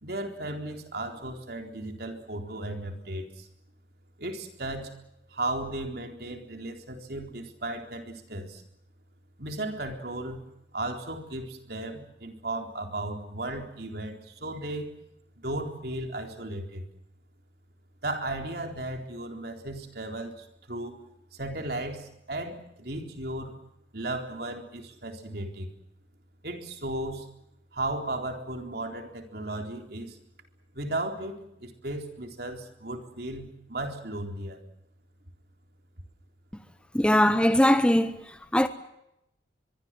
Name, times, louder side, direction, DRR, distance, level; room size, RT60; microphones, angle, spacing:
voice 1, 0.0-3.5 4.2-4.9 5.3-8.6 9.4-10.4 10.7-14.9 15.4-16.8 18.0-21.0 21.3-23.6 23.9-25.7 26.4-27.3 27.7-30.2 30.7-34.6, right 1 dB, 60° right, 3.9 m, -35 dB
voice 2, 36.9-38.7, left 1 dB, 5° left, 0.9 m, -21 dB
24.0 x 23.5 x 7.7 m
head